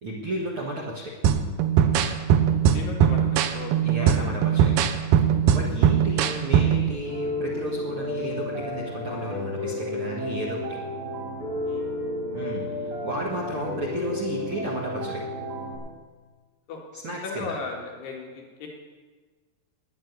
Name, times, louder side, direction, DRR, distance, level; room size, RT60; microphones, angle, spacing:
voice 1, 0.0-1.1 3.8-4.8 5.5-10.8 12.3-15.2 16.9-17.5, right 1 dB, 55° right, -2 dB, 1.5 m, -33 dB
sound 1, 1.2-6.9, right 8 dB, 80° right, 1.9 m, -21 dB
voice 2, 2.7-3.3 3.5-4.7 5.5-5.7 11.7-11.9 12.5-12.8 16.7-16.8 17.2-18.7, left 4 dB, 80° left, -1 dB, 3.9 m, -37 dB
Piano, 7.0-15.8, left 1 dB, 30° right, 6.1 m, -32 dB
10.5 x 10.5 x 9.4 m, 1.4 s
omnidirectional pair, 4.8 m